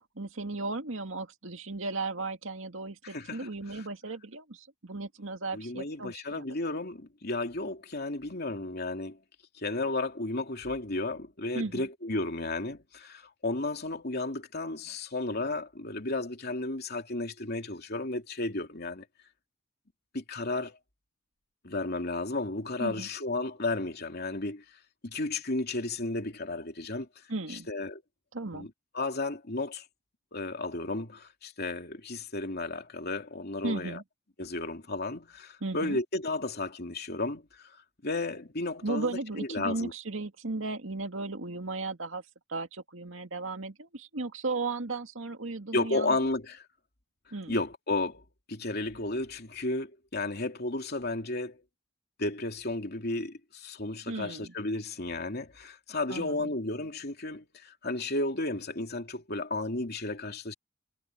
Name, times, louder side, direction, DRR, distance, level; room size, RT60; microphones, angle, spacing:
voice 1, 0.2-6.4 11.5-11.9 22.8-23.1 27.3-27.7 28.3-28.7 33.6-34.0 35.6-36.0 38.8-42.2 42.5-46.1 47.3-47.5 54.1-54.5 56.1-56.5, right 3 dB, 90° right, 2.2 m, -35 dB
voice 2, 3.0-3.8 5.5-9.2 9.6-19.0 20.1-20.8 21.6-24.6 25.0-27.1 27.5-28.0 28.5-29.9 30.3-34.0 34.4-37.8 38.0-39.9 45.7-46.6 47.5-51.6 52.2-60.5, left 2 dB, 55° left, 3.0 m, -33 dB
head